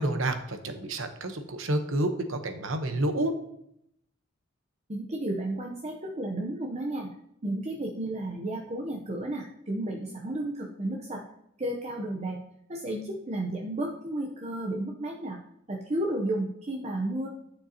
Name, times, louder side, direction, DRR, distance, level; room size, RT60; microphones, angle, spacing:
voice 1, 0.0-3.3, right 1 dB, 70° right, 7 dB, 0.9 m, -29 dB
voice 2, 4.9-7.1 7.4-11.2 11.6-12.4 12.7-15.4 15.7-17.3, right 1 dB, 30° right, 0 dB, 0.7 m, -32 dB
11.0 x 6.7 x 2.8 m, 0.75 s
head